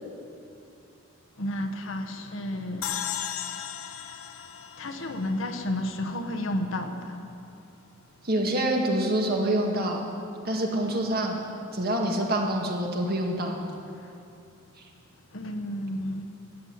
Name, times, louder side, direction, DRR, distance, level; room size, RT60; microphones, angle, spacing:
voice 1, 1.4-3.0 4.8-7.2 15.3-16.3, left 1 dB, 65° left, 1.1 m, -31 dB
sound 1, 2.8-6.1, left 10 dB, 85° left, 0.6 m, -36 dB
voice 2, 8.2-10.0 10.5-11.4 11.7-13.6, right 1 dB, 50° right, 1.8 m, -26 dB
13.0 x 8.2 x 9.5 m
head